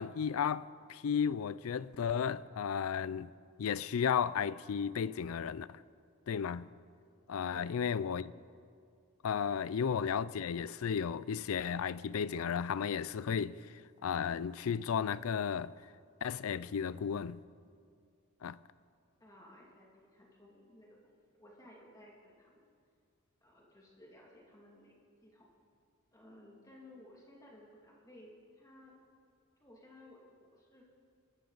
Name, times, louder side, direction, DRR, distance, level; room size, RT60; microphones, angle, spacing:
voice 1, 0.0-3.3 3.6-5.8 6.3-6.7 7.3-8.3 9.2-13.6 14.0-15.7 16.2-17.4 18.4-18.6, left 7 dB, 70° left, 0.4 m, -34 dB
voice 2, 7.5-8.1 19.2-22.7 23.4-24.9 25.2-25.5 26.1-28.9 29.6-30.9, left 1 dB, 15° left, 2.3 m, -57 dB
25.5 x 13.5 x 4.0 m
head